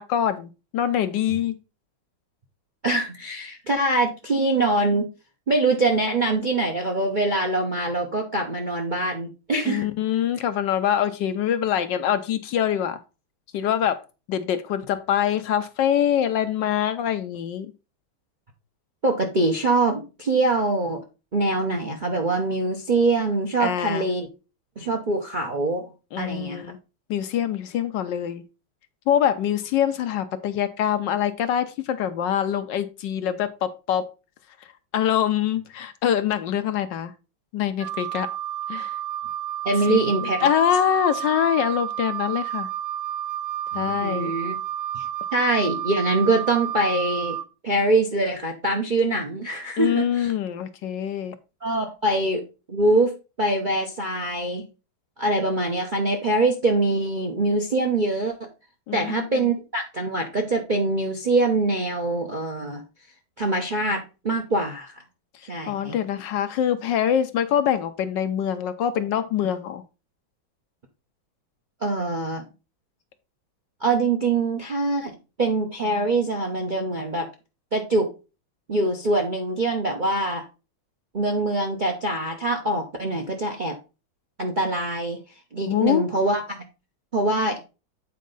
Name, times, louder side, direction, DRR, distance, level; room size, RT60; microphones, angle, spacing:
voice 1, 0.0-1.6 9.6-13.0 13.5-14.0 14.3-17.7 23.6-24.1 26.1-26.8 27.1-28.4 29.1-34.1 34.9-37.1 37.5-38.3 38.7-39.0 39.9-42.7 43.7-44.3 49.8-51.4 58.9-59.5 65.7-69.8 85.7-86.1, left 9 dB, 70° left, 1.2 m, -24 dB
voice 2, 2.8-5.1 5.5-9.9 19.0-21.0 21.3-24.3 24.8-25.9 26.2-26.6 39.6-40.5 43.7-44.6 44.9-45.1 45.3-47.4 47.6-50.3 51.6-53.1 53.4-54.6 55.2-58.5 58.9-62.8 63.4-65.0 65.5-66.0 71.8-72.5 73.8-77.3 77.7-78.1 78.7-80.4 81.1-83.8 84.4-85.2 85.5-86.6 87.1-87.6, right 2 dB, 45° right, 0.6 m, -24 dB
Wind instrument woodwind instrument, 37.8-47.4, right 11 dB, 85° right, 0.7 m, -30 dB
8.4 x 4.5 x 3.9 m
omnidirectional pair, 2.2 m